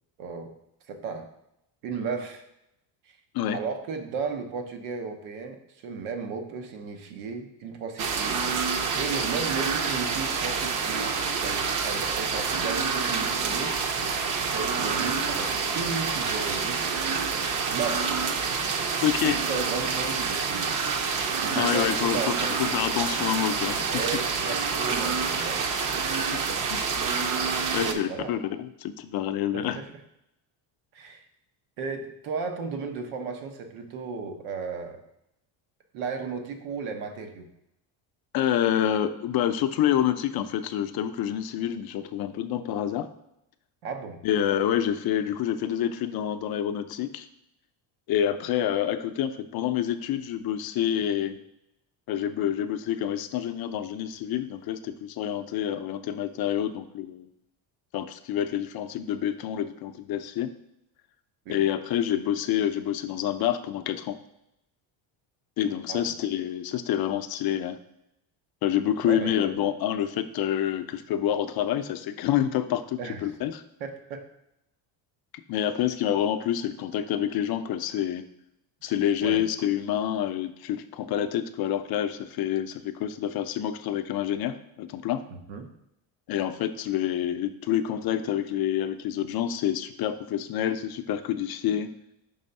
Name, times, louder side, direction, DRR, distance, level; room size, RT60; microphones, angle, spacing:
voice 1, 0.2-0.5 0.9-1.3 1.8-2.4 3.0-3.2 3.5-8.4 9.0-11.1 11.4-13.8 14.5-16.9 17.7-18.1 19.2-20.8 21.4-22.5 23.9-25.6 27.7-28.3 29.5-29.9 30.9-31.2 31.8-35.0 35.9-37.5 43.8-44.2 61.4-61.6 65.9-66.1 69.0-69.3 73.0-73.3 73.8-74.3 79.2-79.4 85.3-85.7, right 5 dB, 85° right, 5 dB, 1.0 m, -35 dB
sound 1, 8.0-27.9, right 5 dB, 40° right, 0.7 m, -27 dB
voice 2, 19.0-19.4 21.5-24.0 26.1-26.4 26.7-26.8 27.7-29.8 38.3-43.1 44.2-47.3 48.1-51.4 52.1-57.3 57.9-60.5 61.5-64.2 65.6-67.8 68.6-73.6 75.5-78.2 78.8-85.2 86.3-91.9, left 10 dB, 50° left, 10 dB, 0.5 m, -27 dB
5.5 x 3.4 x 5.3 m, 0.83 s
cardioid pair, 110°, 49 cm